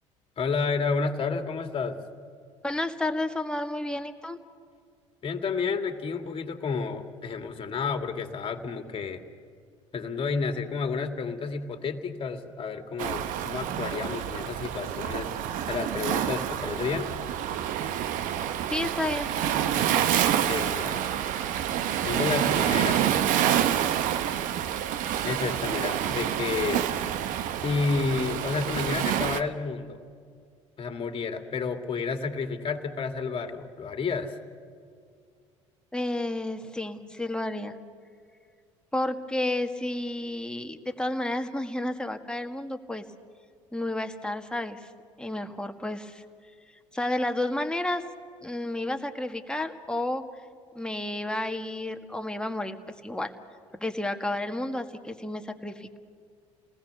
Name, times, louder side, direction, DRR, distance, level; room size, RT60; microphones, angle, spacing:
voice 1, 0.4-2.0 5.2-9.2 9.9-15.3 15.7-17.1 20.5-21.1 22.0-23.0 25.2-26.9 27.6-30.0 30.8-34.3, left 5 dB, 35° left, 6 dB, 2.2 m, -30 dB
voice 2, 2.6-4.4 18.7-19.3 35.9-37.8 38.9-43.0 43.7-44.9 45.2-46.2 46.9-48.0 48.4-50.2 50.8-52.8 53.0-53.3 53.8-56.0, left 1 dB, 5° left, 5 dB, 1.7 m, -31 dB
Waves surf, 13.0-29.4, right 10 dB, 55° right, 1.0 m, -28 dB
29.5 x 19.5 x 7.0 m, 2.2 s
figure-of-eight pair, 60°, 16 cm